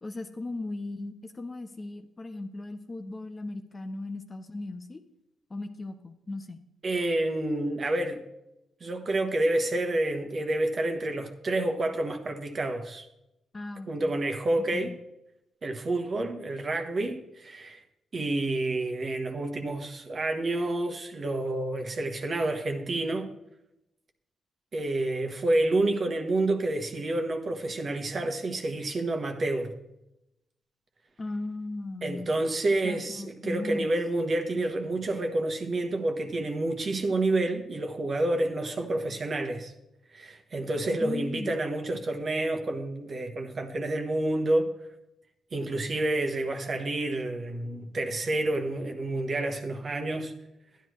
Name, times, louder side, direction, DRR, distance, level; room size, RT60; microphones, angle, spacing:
voice 1, 0.0-5.0 5.5-6.6 13.5-14.1 14.7-15.0 31.2-32.3 32.8-34.0 41.0-41.5, left 2 dB, 30° left, 0.9 m, -37 dB
voice 2, 6.8-8.2 8.8-13.0 13.9-14.9 15.6-17.8 18.1-23.4 24.7-29.8 32.0-39.7 40.1-44.7 45.5-50.3, right 2 dB, 45° right, 1.2 m, -29 dB
11.5 x 10.5 x 3.1 m
cardioid pair, 80°, 0 cm